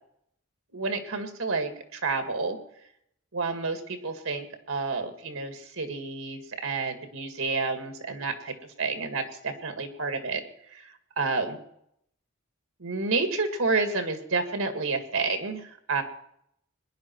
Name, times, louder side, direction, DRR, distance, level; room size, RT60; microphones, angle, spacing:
voice 1, 0.7-2.6 3.3-8.5 8.8-10.4 10.7-11.6 12.8-16.0, right 3 dB, 80° right, 6 dB, 2.0 m, -30 dB
22.0 x 10.5 x 4.6 m, 0.73 s
head